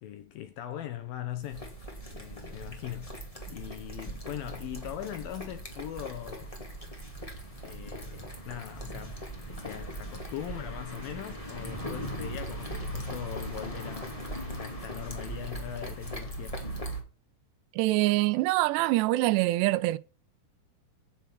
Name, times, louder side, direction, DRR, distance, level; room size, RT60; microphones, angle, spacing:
voice 1, 0.0-1.7 2.1-3.2 3.5-6.6 7.6-9.2 9.6-14.2 14.6-16.6, left 12 dB, 75° left, 2.2 m, -40 dB
sound 1, 1.4-17.0, right 1 dB, 20° left, 0.8 m, -39 dB
voice 2, 17.8-20.0, right 19 dB, 85° right, 2.7 m, -24 dB
9.4 x 6.9 x 6.0 m
omnidirectional pair, 5.0 m